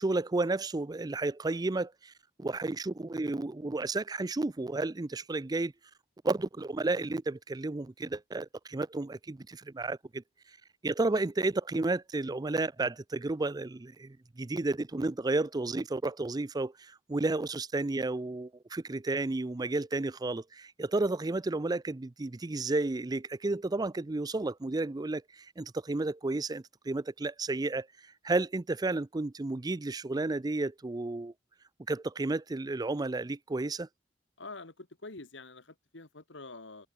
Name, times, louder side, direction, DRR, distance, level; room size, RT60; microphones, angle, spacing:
voice 1, 0.0-2.1 2.4-5.7 6.2-10.2 10.8-27.9 28.2-31.3 31.9-33.9, right 2 dB, 20° right, 0.5 m, -32 dB
voice 2, 34.4-36.9, left 3 dB, 85° left, 2.2 m, -46 dB
head